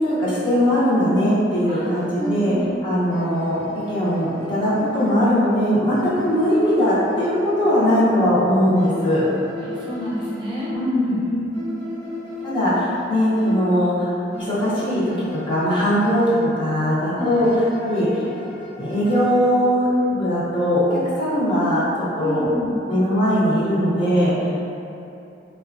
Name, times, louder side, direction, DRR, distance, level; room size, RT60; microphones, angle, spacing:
voice 1, 0.0-2.5 2.8-9.2 10.7-11.2 12.4-17.5 17.8-18.2 18.8-20.8 21.2-22.4 22.9-24.3, equal, 30° left, -10 dB, 0.6 m, -20 dB
voice 2, 1.7-2.7 9.6-10.7 11.0-11.6 17.1-17.5 22.2-22.8, equal, 25° right, -9 dB, 0.6 m, -29 dB
sound 1, 1.8-5.4 5.9-8.2 8.7-11.0 11.5-14.0 14.3-16.6 17.2-19.9, left 1 dB, 45° left, 1.2 m, -38 dB
2.8 x 2.1 x 2.4 m, 2.8 s
head